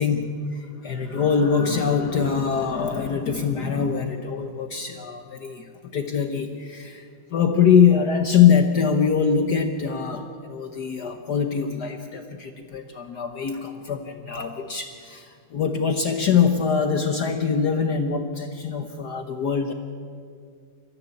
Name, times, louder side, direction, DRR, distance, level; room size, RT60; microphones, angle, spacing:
voice 1, 0.0-19.7, left 6 dB, 55° left, 6 dB, 1.4 m, -23 dB
26.5 x 14.5 x 8.5 m, 2.3 s
omnidirectional pair, 2.4 m